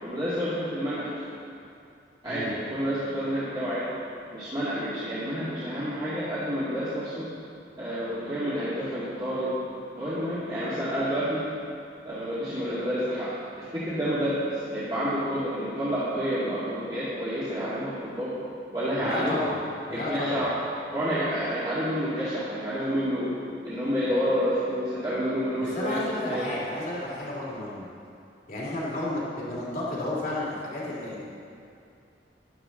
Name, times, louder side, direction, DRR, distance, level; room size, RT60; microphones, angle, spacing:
voice 1, 0.0-1.1 2.2-3.9 4.3-7.2 7.8-9.5 10.0-11.4 12.0-13.3 13.6-18.4 18.7-19.4 19.9-20.5 20.9-23.3 23.6-26.5, equal, 25° right, -12 dB, 2.3 m, -29 dB
voice 2, 19.0-19.5 19.9-20.4 25.6-27.9 28.5-31.2, left 1 dB, 50° left, -6 dB, 2.7 m, -32 dB
13.5 x 11.5 x 3.9 m, 2.5 s
head